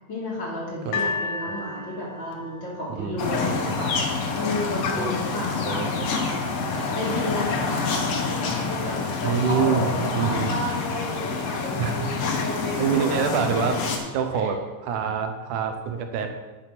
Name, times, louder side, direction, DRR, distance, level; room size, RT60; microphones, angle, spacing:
voice 1, 0.1-6.4 6.9-13.3 14.3-14.5, left 1 dB, 40° left, -5 dB, 3.1 m, -32 dB
sound 1, 0.9-4.1 4.9-5.0, left 4 dB, 85° left, 2.6 m, -33 dB
voice 2, 0.9-1.5 2.9-3.2 3.7-3.9 4.9-5.9 6.2-6.3 6.9-7.0 9.2-10.6 11.8-12.1 12.8-13.8 14.1-16.3, right 6 dB, 85° right, 6 dB, 2.4 m, -27 dB
sound 2, 3.2-14.0, left 4 dB, 60° left, 2.2 m, -27 dB
9.7 x 6.5 x 5.9 m, 1.2 s
omnidirectional pair, 3.5 m